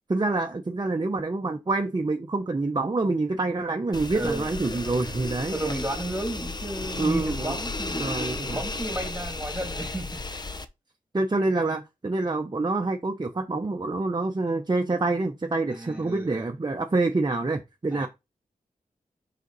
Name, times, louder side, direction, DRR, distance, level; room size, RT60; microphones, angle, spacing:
voice 1, 0.1-5.6 7.0-7.6 8.0-8.6 11.1-18.1, right 3 dB, 30° right, 0.8 m, -27 dB
sound 1, 3.9-10.6, left 3 dB, 30° left, 0.7 m, -34 dB
voice 2, 4.1-4.5 5.5-10.5 15.7-16.5 17.9-18.1, right 1 dB, 10° right, 2.3 m, -33 dB
5.1 x 4.9 x 4.0 m
cardioid pair, 65°, 15 cm